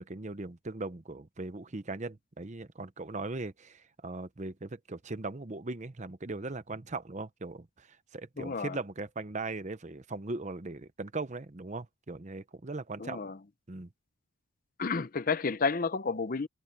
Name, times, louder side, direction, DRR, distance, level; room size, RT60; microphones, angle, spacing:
voice 1, 0.0-13.2 13.7-13.9, right 3 dB, 35° right, 0.8 m, -39 dB
voice 2, 8.4-8.8 13.0-13.3 14.8-16.5, left 4 dB, 40° left, 0.6 m, -31 dB
head